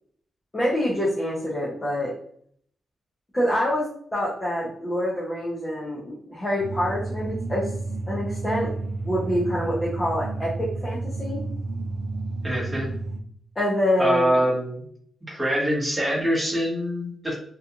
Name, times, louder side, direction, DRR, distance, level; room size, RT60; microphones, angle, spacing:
voice 1, 0.5-2.1 3.3-7.7 8.0-8.7 9.0-11.4 13.6-14.3, equal, 20° left, -7 dB, 0.6 m, -26 dB
sound 1, 6.6-13.2, right 3 dB, 80° right, 0.3 m, -31 dB
voice 2, 12.4-12.9 14.0-14.8 15.3-17.3, equal, 10° right, -5 dB, 1.1 m, -24 dB
2.8 x 2.4 x 2.4 m, 0.62 s
wide cardioid pair, 125°, 0 cm